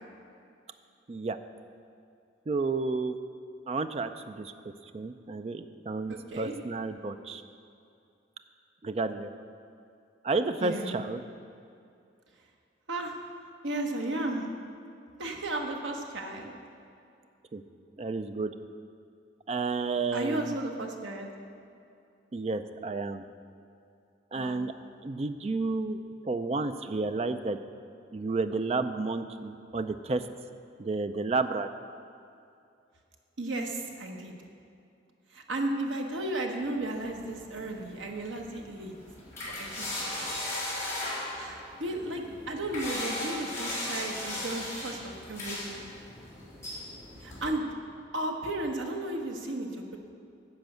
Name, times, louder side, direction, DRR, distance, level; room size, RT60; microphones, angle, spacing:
voice 1, 2.5-3.2 3.7-4.5 4.9-7.4 8.8-9.3 10.2-11.2 17.5-17.6 18.0-18.5 19.5-20.6 22.3-23.2 24.3-24.7 25.0-27.6 28.1-30.2 30.8-31.7, right 3 dB, 30° right, 10 dB, 0.3 m, -31 dB
voice 2, 6.1-6.5 10.6-11.0 12.9-13.2 13.6-14.5 15.2-16.5 20.1-21.3 24.3-24.6 33.4-34.3 35.3-38.9 39.4-40.3 40.7-40.8 41.4-45.9 47.2-47.6 48.1-50.0, right 2 dB, 75° right, 2 dB, 1.1 m, -34 dB
sound 1, 36.9-47.5, left 1 dB, 15° left, 2.9 m, -38 dB
10.5 x 5.3 x 7.7 m, 2.5 s
head